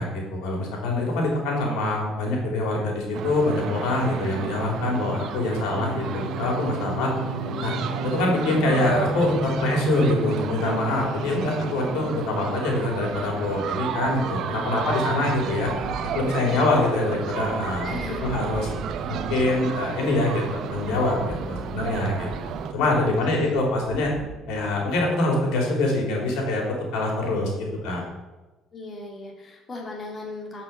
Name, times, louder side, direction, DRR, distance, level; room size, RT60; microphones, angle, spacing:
voice 1, 0.0-7.1 7.6-7.7 8.0-15.7 16.1-18.0 18.2-18.7 19.1-24.1 24.5-28.0, left 2 dB, 90° left, 0 dB, 3.9 m, -25 dB
sound 1, 3.1-22.7, right 8 dB, 60° right, 0.8 m, -32 dB
sound 2, 5.7-14.9, left 1 dB, 65° left, 1.7 m, -34 dB
sound 3, 15.3-26.3, right 3 dB, 25° right, 2.5 m, -40 dB
voice 2, 17.8-18.4 23.2-23.7 28.7-30.6, left 2 dB, 30° left, -1 dB, 2.6 m, -37 dB
11.5 x 6.1 x 7.3 m, 1.1 s
cardioid pair, 125°, 0 cm